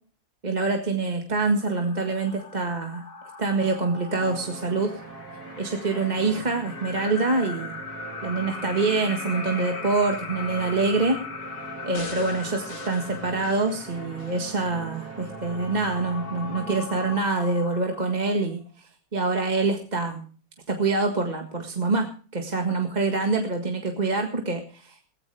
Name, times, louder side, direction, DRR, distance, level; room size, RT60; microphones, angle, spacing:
voice 1, 0.4-3.0 3.4-4.9 5.6-7.7 8.2-11.2 11.8-18.6 19.1-20.2 20.7-25.1, right 3 dB, 20° right, 3 dB, 1.5 m, -25 dB
sound 1, 1.3-18.7, left 5 dB, 60° left, 3.0 m, -40 dB
sound 2, 4.1-17.2, right 3 dB, 45° right, 3.4 m, -41 dB
sound 3, 11.9-14.4 14.9-15.0, left 3 dB, 45° left, 3.2 m, -42 dB
17.5 x 15.5 x 3.4 m, 0.40 s
omnidirectional pair, 2.4 m